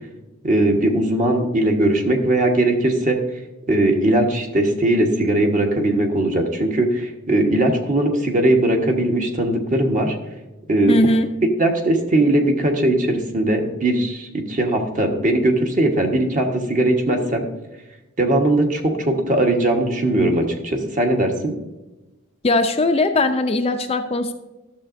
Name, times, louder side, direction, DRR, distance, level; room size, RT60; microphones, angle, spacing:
voice 1, 0.4-3.2 3.7-10.1 10.7-10.9 11.6-17.5 18.2-21.5, right 1 dB, 40° right, 2 dB, 1.3 m, -19 dB
voice 2, 10.9-11.3 22.4-24.3, left 2 dB, 30° left, 6 dB, 0.5 m, -19 dB
12.0 x 7.1 x 2.6 m, 1.0 s
head